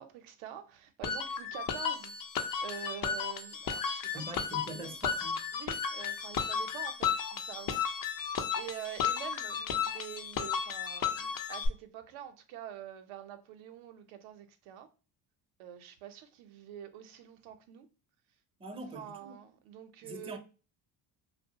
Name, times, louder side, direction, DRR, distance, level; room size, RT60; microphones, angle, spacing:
voice 1, 0.0-2.1 2.6-4.2 4.5-4.9 5.5-14.9 15.6-17.9 18.9-20.4, right 10 dB, 75° right, 0.6 m, -46 dB
sound 1, 1.0-11.7, left 7 dB, 45° left, 0.5 m, -34 dB
voice 2, 4.1-5.5 18.6-19.4 20.0-20.4, right 2 dB, 10° right, 0.5 m, -43 dB
2.2 x 2.0 x 2.7 m
supercardioid pair, 85°, 49 cm